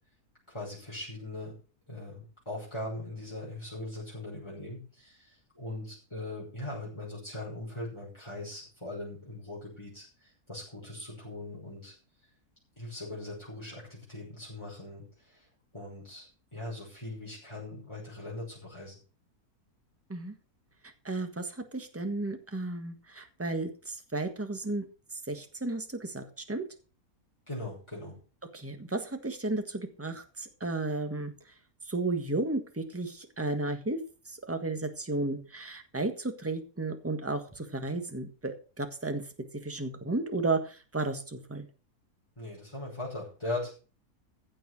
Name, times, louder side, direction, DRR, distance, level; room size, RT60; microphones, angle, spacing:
voice 1, 0.5-1.6 1.9-11.9 12.8-15.4 15.7-19.0 27.5-28.1 42.4-43.7, left 2 dB, 15° left, -6 dB, 5.9 m, -40 dB
voice 2, 21.0-24.9 25.3-26.6 28.5-31.3 31.8-34.0 34.2-39.3 39.6-41.7, right 2 dB, 10° right, 7 dB, 1.5 m, -33 dB
15.5 x 6.6 x 6.2 m, 0.35 s
omnidirectional pair, 1.6 m